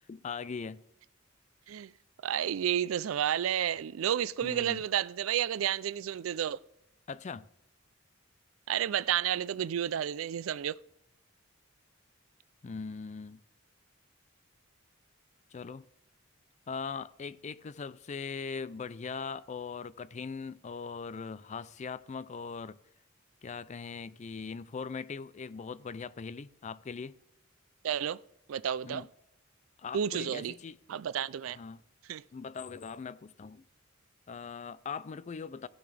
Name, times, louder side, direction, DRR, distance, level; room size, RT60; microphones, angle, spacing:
voice 1, 0.1-0.8 4.4-4.8 7.1-7.5 12.6-13.4 15.5-15.8 16.7-22.8 23.4-27.2 28.8-29.1 29.8-30.8 31.5-31.8 32.3-33.6 34.3-35.7, left 5 dB, 35° left, 0.4 m, -40 dB
voice 2, 2.2-6.6 8.7-10.8 27.8-28.2 28.5-29.1 29.9-30.6 30.9-31.6 32.1-32.2, right 10 dB, 90° right, 0.4 m, -31 dB
16.0 x 6.8 x 3.4 m
head